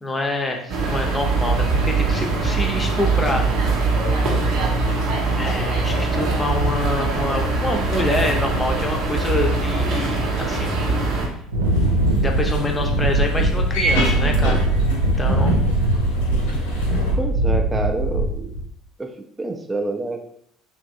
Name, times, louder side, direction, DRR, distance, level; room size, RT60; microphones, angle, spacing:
voice 1, 0.0-3.5 5.3-10.7 12.2-15.6, left 1 dB, 20° left, 2 dB, 0.6 m, -26 dB
sound 1, 0.7-11.3, right 3 dB, 65° right, 0.7 m, -22 dB
Wind, 11.5-18.6, right 1 dB, 85° right, 0.3 m, -21 dB
sound 2, 11.6-17.1, equal, 80° left, 0.8 m, -28 dB
voice 2, 17.2-18.5 19.0-19.1 19.4-20.2, right 2 dB, 20° right, 4 dB, 0.5 m, -27 dB
3.0 x 2.5 x 2.4 m, 0.68 s
hypercardioid pair, 65°, 0 cm